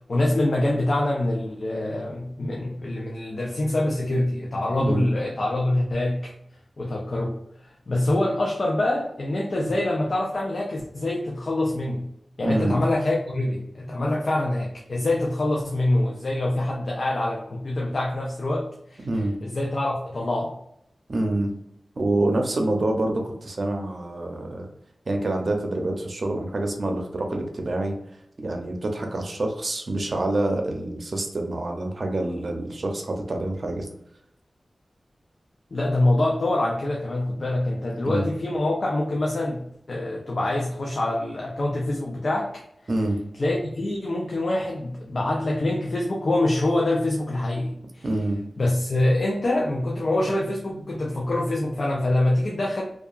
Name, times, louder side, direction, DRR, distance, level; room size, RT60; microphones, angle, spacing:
voice 1, 0.1-6.3 6.8-12.1 12.4-19.0 19.4-20.5 35.7-42.6 43.4-48.1 48.6-52.8, left 1 dB, 55° left, -1 dB, 0.4 m, -25 dB
voice 2, 12.4-12.8 19.0-19.3 21.1-21.5 22.0-24.7 25.1-28.0 28.4-33.9 38.0-38.3 42.9-43.2 48.0-48.4 50.7-50.8, right 2 dB, 55° right, 3 dB, 0.6 m, -26 dB
2.8 x 2.3 x 2.4 m, 0.74 s
wide cardioid pair, 105°, 0 cm